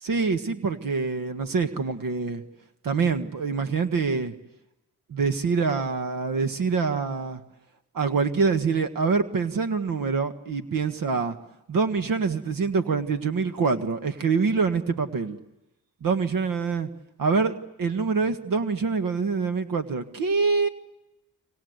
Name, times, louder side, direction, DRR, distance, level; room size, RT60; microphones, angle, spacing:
voice 1, 0.0-2.4 2.8-4.3 5.1-7.4 7.9-11.3 11.7-15.4 16.0-16.9 17.2-20.7, right 4 dB, 65° right, 8 dB, 1.7 m, -25 dB
30.0 x 24.0 x 8.1 m, 0.94 s
supercardioid pair, 55°, 36 cm